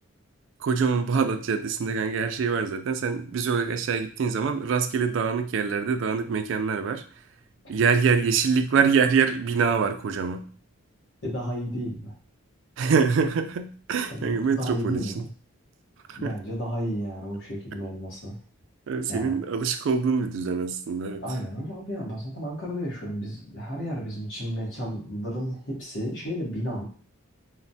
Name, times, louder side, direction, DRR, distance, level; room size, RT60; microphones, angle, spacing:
voice 1, 0.6-7.0 7.7-10.5 12.8-15.2 16.1-16.3 18.9-21.2, right 5 dB, 60° right, 8 dB, 0.3 m, -25 dB
voice 2, 11.2-12.1 14.1-15.3 16.1-18.4 19.1-19.4 21.2-26.9, equal, 60° left, -3 dB, 1.0 m, -32 dB
3.1 x 2.1 x 2.6 m, 0.43 s
head